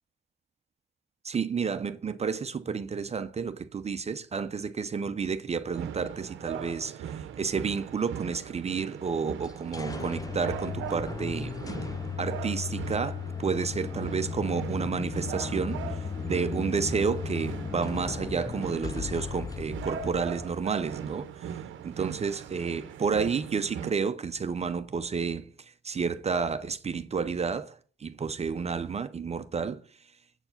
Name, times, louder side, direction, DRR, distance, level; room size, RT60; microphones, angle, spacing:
voice 1, 1.2-11.6 12.2-29.8, right 5 dB, 30° right, 0.6 m, -31 dB
sound 1, 5.7-23.9, right 9 dB, 75° right, 0.8 m, -40 dB
sound 2, 9.4-21.1, left 6 dB, 20° left, 0.3 m, -36 dB
8.0 x 4.3 x 5.8 m
cardioid pair, 90°, 20 cm